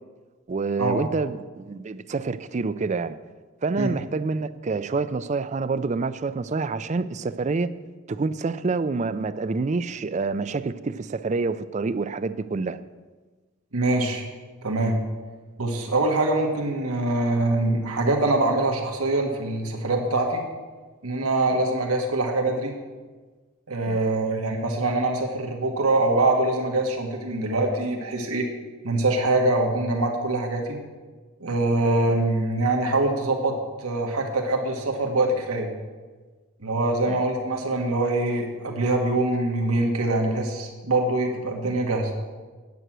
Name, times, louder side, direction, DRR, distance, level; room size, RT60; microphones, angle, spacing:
voice 1, 0.5-3.2 3.6-7.7 8.1-12.8 23.8-24.0 37.1-37.2 41.6-41.8, right 4 dB, 35° right, 0.4 m, -27 dB
voice 2, 13.7-14.2 14.6-15.0 15.6-20.4 21.0-22.8 23.7-28.5 28.8-30.8 31.4-35.7 36.6-42.1, right 2 dB, 90° right, 1.6 m, -24 dB
9.5 x 9.0 x 6.2 m
head